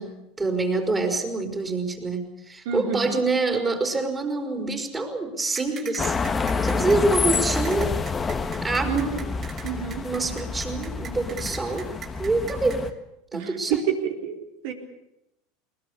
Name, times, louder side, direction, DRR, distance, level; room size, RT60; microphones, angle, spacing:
voice 1, 0.0-6.2 6.6-8.0 8.6-9.1 10.0-11.9 12.2-12.9 13.3-13.8, right 3 dB, 20° right, 4 dB, 4.7 m, -26 dB
voice 2, 2.7-3.2 8.8-9.3 9.6-10.0 13.3-14.4 14.6-14.7, right 8 dB, 70° right, 4 dB, 4.1 m, -28 dB
sound 1, 5.5-12.8, right 8 dB, 40° right, 5.9 m, -40 dB
sound 2, 6.0-12.9, left 4 dB, 20° left, 1.6 m, -28 dB
21.5 x 20.0 x 8.5 m, 0.84 s
supercardioid pair, 110°, 0 cm